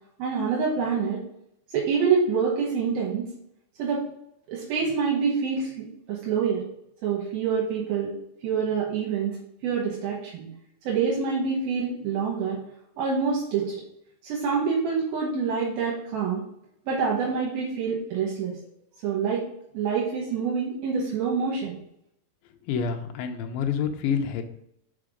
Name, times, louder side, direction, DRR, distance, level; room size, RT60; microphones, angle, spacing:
voice 1, 0.2-1.2 1.7-3.3 3.8-4.0 4.5-6.6 7.0-8.1 8.4-9.4 9.6-10.5 10.8-12.6 13.0-13.8 14.2-16.4 16.9-18.6 19.0-19.5 19.7-21.7, right 5 dB, 80° right, -3 dB, 3.0 m, -26 dB
voice 2, 22.7-24.4, left 7 dB, 80° left, 5 dB, 2.4 m, -27 dB
5.8 x 5.0 x 5.0 m, 0.74 s
omnidirectional pair, 4.2 m